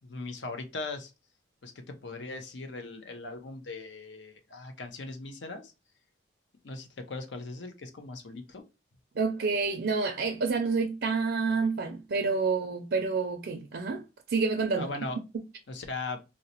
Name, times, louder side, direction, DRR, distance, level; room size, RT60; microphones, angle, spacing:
voice 1, 0.0-1.1 1.6-5.7 6.6-8.6 14.8-15.2 15.7-16.2, left 3 dB, 75° left, 0.6 m, -39 dB
voice 2, 9.2-14.9, right 4 dB, 60° right, 0.4 m, -28 dB
3.9 x 2.0 x 2.7 m
head